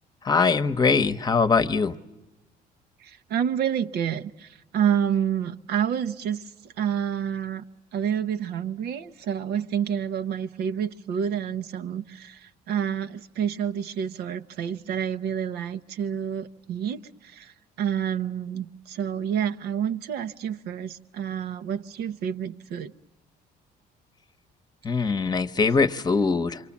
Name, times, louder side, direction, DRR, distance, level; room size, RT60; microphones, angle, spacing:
voice 1, 0.2-1.9 24.8-26.6, left 4 dB, 25° left, 12 dB, 1.0 m, -22 dB
voice 2, 3.0-6.4 6.8-7.6 7.9-17.5 17.8-22.9, right 8 dB, 75° right, 11 dB, 0.9 m, -28 dB
27.5 x 24.5 x 7.3 m, 1.0 s
cardioid pair, 110°, 17 cm